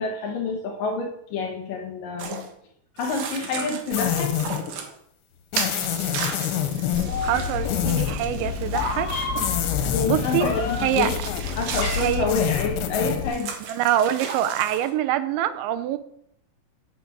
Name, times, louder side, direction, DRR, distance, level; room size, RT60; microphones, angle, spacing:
voice 1, 0.0-2.5 3.0-4.4 9.9-11.1 11.5-13.6, left 4 dB, 65° left, 3 dB, 2.4 m, -28 dB
sound 1, 2.2-2.5 3.0-4.9 5.6-9.4 10.2-12.2 13.2-14.9, right 6 dB, 65° right, 2.8 m, -35 dB
sound 2, 3.9-4.7 5.5-7.1 7.6-8.1 9.4-10.6 11.0-11.6 12.2-13.3, left 10 dB, 85° left, 3.5 m, -26 dB
Meow, 6.9-13.3, left 5 dB, 50° left, 2.3 m, -29 dB
voice 2, 7.2-9.1 9.8-10.5 10.8-11.1 12.0-12.3 13.7-16.0, right 11 dB, 90° right, 12 dB, 3.1 m, -25 dB
10.0 x 6.8 x 6.0 m, 0.71 s
omnidirectional pair, 5.1 m